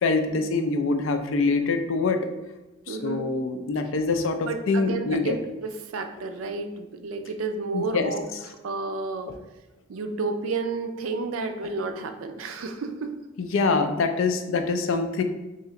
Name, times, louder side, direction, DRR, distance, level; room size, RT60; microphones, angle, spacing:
voice 1, 0.0-2.3 2.9-5.4 7.7-8.4 13.4-15.2, left 3 dB, 70° left, 7 dB, 0.4 m, -25 dB
voice 2, 2.9-3.3 4.4-5.4 5.6-8.2 8.6-9.3 9.9-13.1, right 3 dB, 80° right, 7 dB, 0.4 m, -31 dB
3.2 x 2.9 x 3.6 m, 1.0 s
head